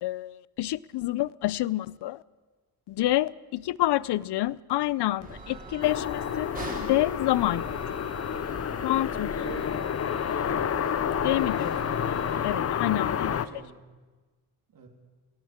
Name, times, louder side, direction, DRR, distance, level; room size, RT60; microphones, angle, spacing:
voice 1, 0.0-2.2 2.9-8.0 8.8-9.4 11.2-13.3, left 15 dB, 80° left, 0.6 m, -28 dB
sound 1, 5.2-12.6, right 2 dB, 20° right, 3.1 m, -42 dB
sound 2, 5.8-13.5, left 8 dB, 40° left, 0.6 m, -29 dB
voice 2, 9.2-9.7 10.3-10.8 12.6-13.8 14.7-14.9, right 5 dB, 55° right, 3.1 m, -46 dB
18.5 x 17.5 x 8.7 m
wide cardioid pair, 165°, 40 cm